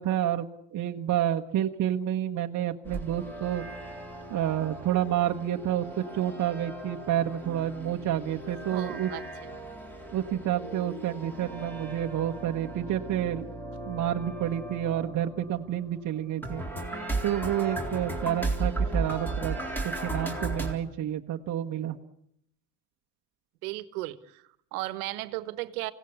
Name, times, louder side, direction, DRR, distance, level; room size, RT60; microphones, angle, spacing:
voice 1, 0.0-3.6 4.3-9.1 10.1-13.5 13.9-16.6 17.2-19.6 19.8-22.0, right 11 dB, 45° right, 3 dB, 1.3 m, -29 dB
sound 1, 2.8-20.7, right 2 dB, 5° left, 3.8 m, -36 dB
voice 2, 8.7-9.2 23.6-25.9, right 18 dB, 85° right, 14 dB, 1.4 m, -35 dB
25.0 x 17.5 x 8.4 m, 0.75 s
supercardioid pair, 105°, 43 cm